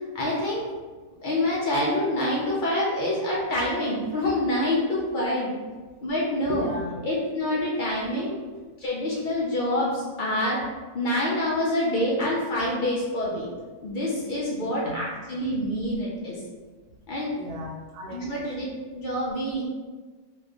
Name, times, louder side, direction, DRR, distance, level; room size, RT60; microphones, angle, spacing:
voice 1, 0.1-0.6 1.2-5.5 6.0-6.7 7.0-8.4 8.8-10.6 10.9-13.5 13.8-16.4 17.1-17.3 18.1-19.6, left 1 dB, 85° left, -5 dB, 0.4 m, -26 dB
voice 2, 6.5-7.1 14.6-15.0 17.4-18.5, left 1 dB, 85° right, 1 dB, 1.1 m, -38 dB
2.8 x 2.4 x 3.5 m, 1.3 s
omnidirectional pair, 1.6 m